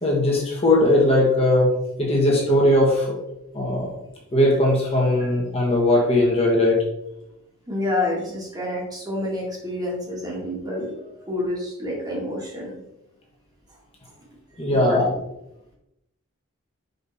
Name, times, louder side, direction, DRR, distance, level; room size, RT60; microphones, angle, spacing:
voice 1, 0.0-1.7 2.0-3.2 3.5-3.9 4.3-6.8 14.6-15.0, left 1 dB, 25° left, -3 dB, 1.5 m, -19 dB
voice 2, 7.7-12.7 14.7-15.1, left 2 dB, 15° right, -3 dB, 1.8 m, -28 dB
5.8 x 5.4 x 4.2 m, 0.89 s
head